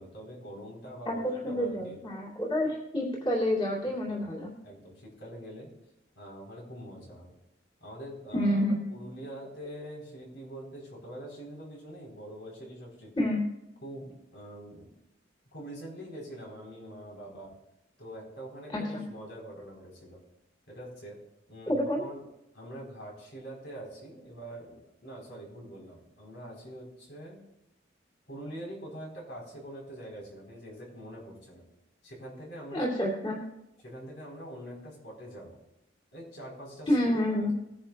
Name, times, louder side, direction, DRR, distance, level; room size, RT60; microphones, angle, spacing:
voice 1, 0.0-2.0 3.8-4.3 4.6-5.7 6.2-7.3 7.8-8.6 8.9-13.3 13.8-14.9 15.5-17.5 18.0-20.2 20.7-21.2 21.5-22.2 22.5-27.4 28.3-31.7 32.0-32.9 33.8-35.6 36.1-37.5, right 1 dB, 80° left, -2 dB, 4.3 m, -44 dB
voice 2, 1.1-4.5 8.3-8.8 13.2-13.4 18.7-19.0 21.7-22.0 32.7-33.4 36.9-37.5, left 1 dB, 30° left, -4 dB, 2.7 m, -28 dB
19.5 x 10.5 x 2.4 m, 0.87 s
head